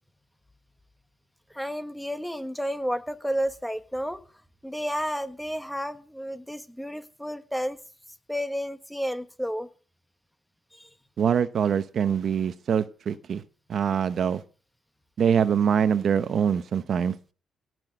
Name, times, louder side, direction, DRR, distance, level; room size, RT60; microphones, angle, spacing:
voice 1, 1.5-4.2 4.6-7.8 8.3-9.7 10.7-10.9, equal, ahead, 1.4 m, -31 dB
voice 2, 11.2-13.4 13.7-14.4 15.2-17.1, right 7 dB, 55° right, 0.9 m, -24 dB
17.5 x 6.2 x 7.8 m
cardioid pair, 90°, 0 cm